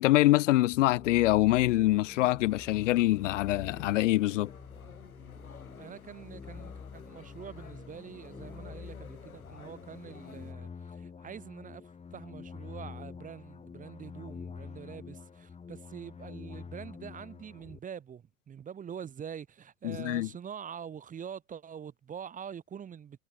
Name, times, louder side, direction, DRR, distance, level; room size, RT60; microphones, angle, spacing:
voice 1, 0.0-4.5 19.8-20.3, left 17 dB, 60° left, 0.7 m, -25 dB
sound 1, 0.7-17.8, left 5 dB, 15° left, 1.6 m, -47 dB
sound 2, 2.5-10.5, left 6 dB, 80° left, 7.3 m, -53 dB
voice 2, 5.8-11.8 12.1-23.2, right 8 dB, 20° right, 0.9 m, -45 dB
figure-of-eight pair, 80°, 42 cm